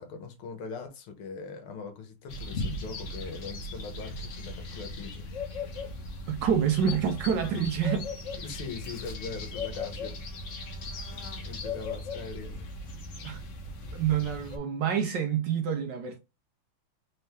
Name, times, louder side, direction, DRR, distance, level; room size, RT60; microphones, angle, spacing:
voice 1, 0.0-5.3 8.4-10.2 11.3-12.7, left 4 dB, 80° left, 1.8 m, -41 dB
sound 1, 2.3-14.6, left 3 dB, 60° left, 0.8 m, -38 dB
voice 2, 6.3-8.1 13.2-13.4 13.9-16.2, right 8 dB, 70° right, 1.1 m, -27 dB
4.2 x 2.8 x 3.3 m
omnidirectional pair, 2.4 m